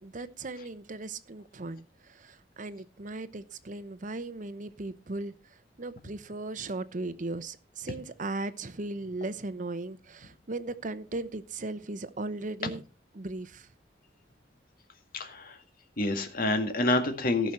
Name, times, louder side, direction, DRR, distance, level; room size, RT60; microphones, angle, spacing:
voice 1, 0.0-12.8 13.1-13.7, right 2 dB, 45° right, 13 dB, 0.9 m, -37 dB
voice 2, 15.1-15.6 16.0-17.5, left 2 dB, 55° left, 6 dB, 1.9 m, -27 dB
18.0 x 6.1 x 4.3 m, 0.33 s
head